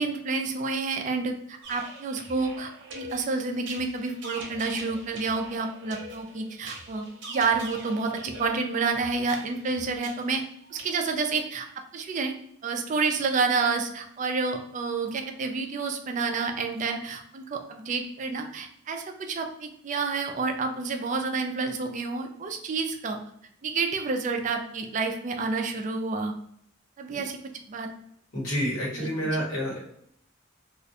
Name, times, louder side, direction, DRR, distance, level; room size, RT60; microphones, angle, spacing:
voice 1, 0.0-7.0 7.3-10.4 10.7-11.7 11.9-12.3 12.6-23.2 23.6-26.3 27.0-27.4 27.7-27.9 29.0-29.5, right 4 dB, 40° right, 5 dB, 0.3 m, -29 dB
sound 1, 1.6-10.9, right 2 dB, 60° right, 0.7 m, -43 dB
voice 2, 28.3-29.8, equal, 80° left, -5 dB, 1.2 m, -29 dB
2.4 x 2.1 x 2.7 m, 0.70 s
head